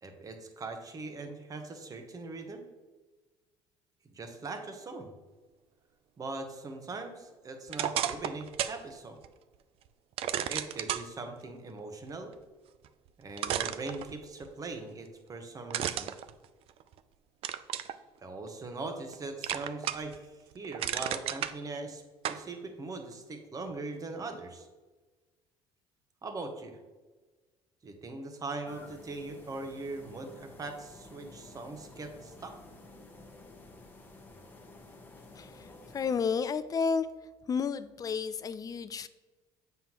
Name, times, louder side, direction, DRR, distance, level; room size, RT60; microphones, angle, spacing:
voice 1, 0.0-2.7 4.1-5.1 6.2-9.2 10.5-12.3 13.2-16.1 18.2-20.1 20.5-22.0 22.3-24.7 26.2-26.8 27.8-32.5, right 3 dB, 35° right, 5 dB, 1.1 m, -41 dB
sound 1, 7.7-8.8 9.2-9.3 10.2-11.1 12.8-12.9 13.4-14.5 15.7-17.0 17.4-18.0 18.5-19.1 19.4-20.2 20.5-21.5 22.2-22.4, right 10 dB, 60° right, 0.4 m, -33 dB
sound 2, 28.7-36.2, left 2 dB, 20° left, 1.1 m, -52 dB
voice 2, 35.4-35.7 35.9-37.1 37.5-39.1, left 6 dB, 35° left, 13 dB, 0.4 m, -31 dB
7.3 x 5.6 x 3.0 m, 1.3 s
supercardioid pair, 85°, 11 cm